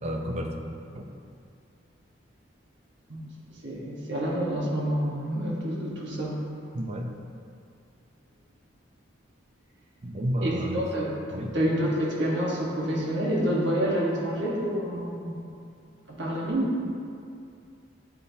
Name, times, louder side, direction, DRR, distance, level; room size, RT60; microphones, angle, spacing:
voice 1, 0.0-0.6 0.9-1.1 6.7-7.1 10.0-10.9 11.3-11.6, right 1 dB, 35° right, 2 dB, 0.5 m, -31 dB
voice 2, 3.6-6.4 10.4-11.1 11.5-15.4 16.1-16.8, equal, 65° right, -4 dB, 1.2 m, -28 dB
8.6 x 4.2 x 2.7 m, 2.4 s
head